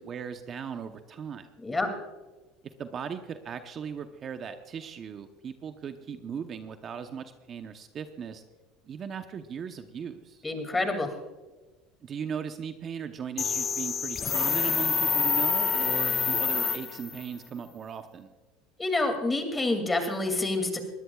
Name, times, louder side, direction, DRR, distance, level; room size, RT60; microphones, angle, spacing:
voice 1, 0.1-1.5 2.8-8.4 8.8-10.4 12.0-18.3, right 7 dB, 40° right, 7 dB, 0.9 m, -38 dB
voice 2, 1.6-1.9 10.4-11.1 18.8-20.8, left 2 dB, 15° left, 5 dB, 2.6 m, -27 dB
sound 1, 13.4-17.2, left 6 dB, 30° left, 0.8 m, -27 dB
21.5 x 16.0 x 2.4 m, 1.2 s
supercardioid pair, 110°, 0 cm